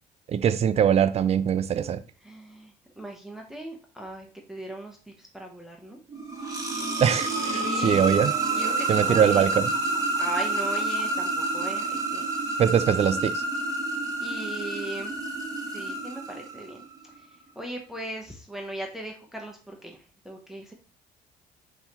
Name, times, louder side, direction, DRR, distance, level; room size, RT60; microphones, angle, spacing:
voice 1, 0.3-2.0 7.0-8.3 8.9-9.7 12.6-13.4, right 8 dB, 40° right, 0.4 m, -22 dB
voice 2, 2.2-6.0 7.5-8.1 8.5-9.5 10.2-12.3 14.2-15.2 15.6-16.8 17.5-20.7, right 1 dB, ahead, 0.7 m, -38 dB
sound 1, 6.1-16.9, right 2 dB, 20° right, 1.2 m, -28 dB
5.4 x 3.0 x 2.9 m
cardioid pair, 110°, 17 cm